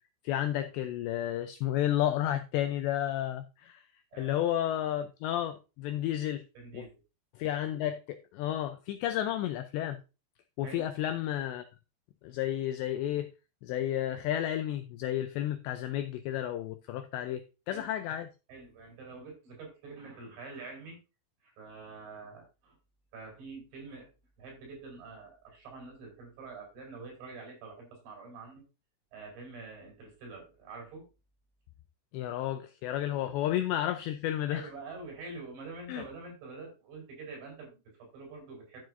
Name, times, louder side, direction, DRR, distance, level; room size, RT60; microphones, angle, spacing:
voice 1, 0.2-3.8 4.2-6.4 6.7-6.9 7.4-10.0 10.6-11.6 12.2-13.3 13.6-18.3 32.1-34.7 35.9-36.0, left 12 dB, 90° left, 2.5 m, -32 dB
voice 2, 4.1-4.4 6.5-6.9 10.6-10.8 17.7-17.9 18.5-21.0 21.4-22.8 23.1-24.1 24.4-28.6 29.1-31.1 33.1-33.3 34.5-38.8, right 3 dB, 65° right, 6.8 m, -46 dB
12.0 x 7.7 x 2.6 m
omnidirectional pair, 5.8 m